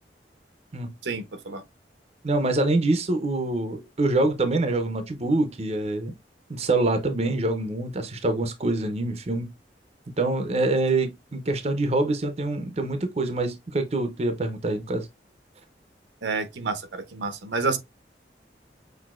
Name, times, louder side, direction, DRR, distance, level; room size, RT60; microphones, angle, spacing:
voice 1, 1.0-1.6 16.2-17.8, right 4 dB, 80° right, 0.7 m, -29 dB
voice 2, 2.2-6.1 6.5-9.5 10.2-15.1, right 2 dB, 35° right, 0.5 m, -25 dB
5.9 x 2.6 x 2.4 m
head